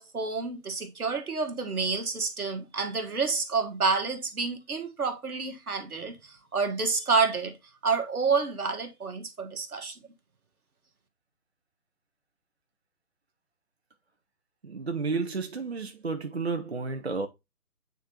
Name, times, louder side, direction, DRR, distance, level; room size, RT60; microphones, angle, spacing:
voice 1, 0.0-7.5 7.8-9.9, right 4 dB, 65° right, 1.6 m, -29 dB
voice 2, 14.6-17.3, right 4 dB, 45° right, 0.5 m, -31 dB
8.9 x 3.7 x 2.8 m
figure-of-eight pair, 150°, 47 cm